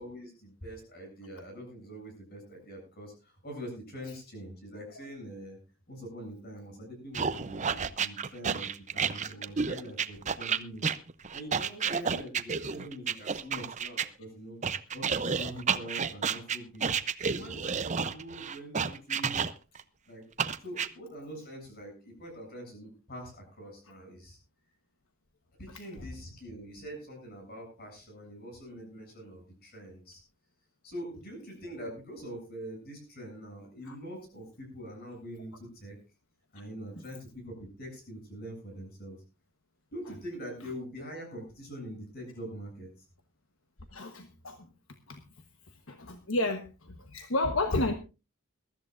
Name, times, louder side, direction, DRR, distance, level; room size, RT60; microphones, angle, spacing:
voice 1, 0.0-5.6 5.9-10.9 11.3-14.6 14.9-16.9 17.3-19.4 20.1-20.3 20.6-24.4 25.6-30.2 30.8-36.0 36.5-39.2 39.9-42.9, equal, 45° left, 2 dB, 7.9 m, -44 dB
sound 1, 7.1-14.1 14.6-19.8 20.4-20.9, right 6 dB, 35° right, 0.6 m, -31 dB
voice 2, 43.9-44.7 45.1-45.2 45.9-47.9, left 2 dB, 70° left, 7 dB, 1.2 m, -31 dB
22.0 x 13.5 x 2.5 m, 0.30 s
head